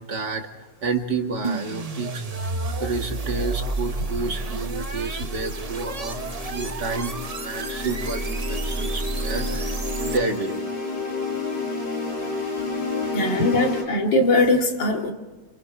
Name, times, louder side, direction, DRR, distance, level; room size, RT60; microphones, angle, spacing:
voice 1, 0.0-10.6, right 4 dB, 70° right, 3 dB, 2.7 m, -30 dB
sound 1, 1.4-10.5, right 3 dB, 30° right, 0.8 m, -30 dB
sound 2, 4.8-13.8, left 4 dB, 55° left, 7.1 m, -31 dB
voice 2, 13.1-15.1, left 2 dB, 85° left, 2 dB, 3.1 m, -20 dB
29.0 x 26.5 x 3.4 m, 1.2 s
omnidirectional pair, 1.9 m